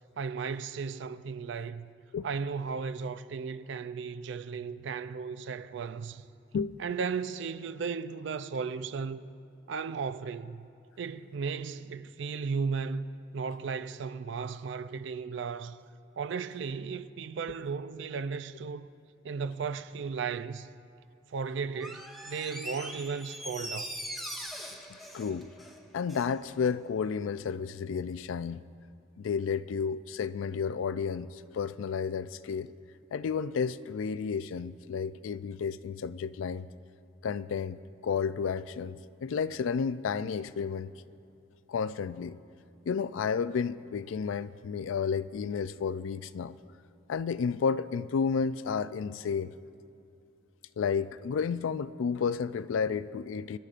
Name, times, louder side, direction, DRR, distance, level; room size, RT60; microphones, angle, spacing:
voice 1, 0.2-1.9 2.2-6.2 6.8-9.3 9.7-10.7 11.0-13.1 13.3-15.8 16.2-18.9 19.2-20.7 21.3-23.9, right 5 dB, 65° right, 0.4 m, -35 dB
Door, 21.7-26.3 26.6-26.7, equal, ahead, 0.8 m, -41 dB
voice 2, 24.9-25.5 25.9-28.6 29.2-32.7 33.1-36.7 37.2-40.9 41.7-42.4 42.9-46.6 47.1-49.6 50.8-53.6, left 6 dB, 75° left, 0.3 m, -32 dB
25.0 x 11.5 x 2.5 m
head